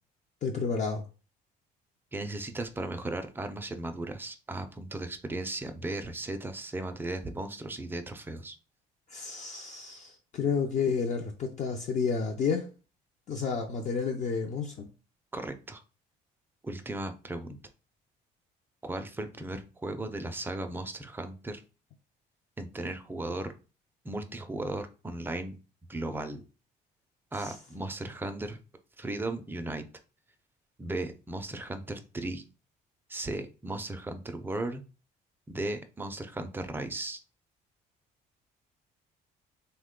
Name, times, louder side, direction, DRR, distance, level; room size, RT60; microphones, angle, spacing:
voice 1, 0.4-1.0 9.1-12.7 13.3-14.8 27.4-27.5, left 5 dB, 45° left, 0.5 m, -30 dB
voice 2, 2.1-8.6 15.3-15.8 16.6-17.6 18.8-21.6 22.6-23.5 24.0-25.6 25.9-26.4 27.3-28.6 29.0-29.8 30.8-32.4 33.1-34.8 35.5-37.2, right 2 dB, 10° right, 0.4 m, -36 dB
3.0 x 2.2 x 3.6 m
cardioid pair, 110°, 17 cm